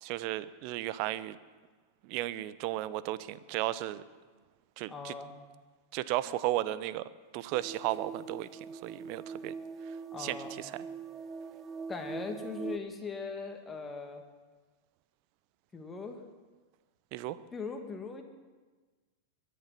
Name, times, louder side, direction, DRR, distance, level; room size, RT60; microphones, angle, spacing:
voice 1, 0.0-1.4 2.0-4.0 4.8-5.1 5.9-7.0 7.3-9.5 10.2-10.7 17.1-17.4, right 15 dB, 50° right, 16 dB, 0.8 m, -34 dB
voice 2, 4.9-5.3 10.1-10.6 11.9-14.2 15.7-16.2 17.5-18.2, left 4 dB, 15° left, 4 dB, 2.5 m, -40 dB
sound 1, 7.5-12.8, right 5 dB, 25° right, 1.0 m, -42 dB
22.5 x 10.5 x 6.0 m, 1.3 s
figure-of-eight pair, 95°, 0 cm